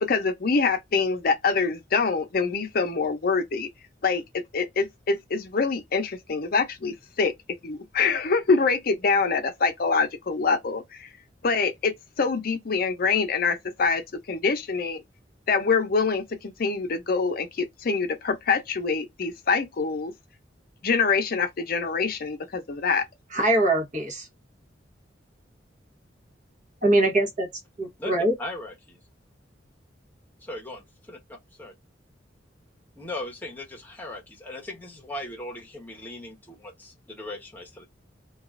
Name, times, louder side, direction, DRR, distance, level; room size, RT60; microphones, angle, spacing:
voice 1, 0.0-3.7 4.0-7.3 7.6-11.1 11.4-14.0 14.3-15.0 15.5-20.1 20.8-23.0, left 4 dB, 50° left, 0.6 m, -25 dB
voice 2, 23.3-24.3 26.8-27.5 27.8-28.3, right 1 dB, 45° right, 1.0 m, -22 dB
voice 3, 28.4-29.0 30.5-30.8 31.1-31.2 31.6-31.7 32.9-37.8, left 1 dB, 10° left, 0.9 m, -38 dB
2.9 x 2.3 x 2.4 m
head